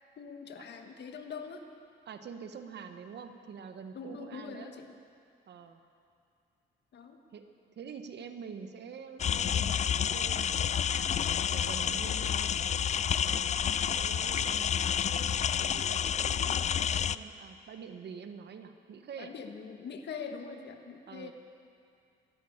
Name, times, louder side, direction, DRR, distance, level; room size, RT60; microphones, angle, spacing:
voice 1, 0.2-1.7 3.9-4.9 6.9-7.2 12.0-12.3 16.3-16.7 19.2-21.3, left 5 dB, 60° left, 5 dB, 1.4 m, -43 dB
voice 2, 2.1-4.7 5.5-5.8 7.3-7.4 7.8-11.1 11.5-12.6 13.1-15.3 15.6-19.3 21.1-21.3, right 6 dB, 60° right, 8 dB, 1.2 m, -46 dB
sound 1, 9.2-17.2, left 8 dB, 35° left, 0.3 m, -29 dB
13.5 x 11.0 x 8.8 m, 2.5 s
cardioid pair, 90°, 20 cm